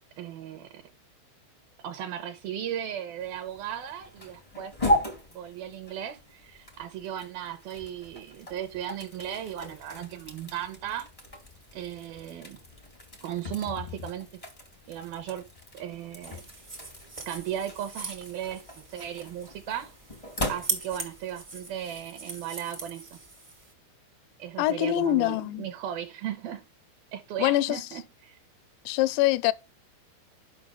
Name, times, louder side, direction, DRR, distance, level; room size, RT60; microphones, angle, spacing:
voice 1, 0.2-0.8 1.8-4.7 5.3-11.1 11.7-12.6 13.2-14.3 14.9-15.4 15.7-16.4 17.3-19.9 20.5-23.2 24.4-26.6 27.1-28.4, right 10 dB, 75° right, 2.3 m, -36 dB
sound 1, 3.2-21.2, left 1 dB, 55° left, 0.3 m, -37 dB
sound 2, 16.2-23.7, right 3 dB, 55° right, 0.5 m, -40 dB
voice 2, 24.6-25.7 27.4-27.8 28.9-29.5, left 15 dB, 80° left, 2.7 m, -24 dB
11.5 x 5.9 x 5.0 m
omnidirectional pair, 5.4 m